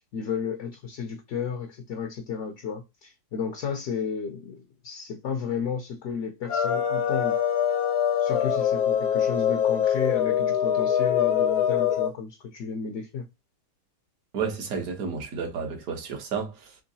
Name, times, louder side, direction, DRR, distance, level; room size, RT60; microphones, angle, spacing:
voice 1, 0.1-7.4 8.2-13.3, left 6 dB, 65° left, 0.7 m, -33 dB
sound 1, 6.5-12.1, left 9 dB, 85° left, 1.4 m, -24 dB
voice 2, 14.3-16.8, right 5 dB, 65° right, 1.4 m, -31 dB
3.7 x 3.0 x 2.6 m
omnidirectional pair, 1.7 m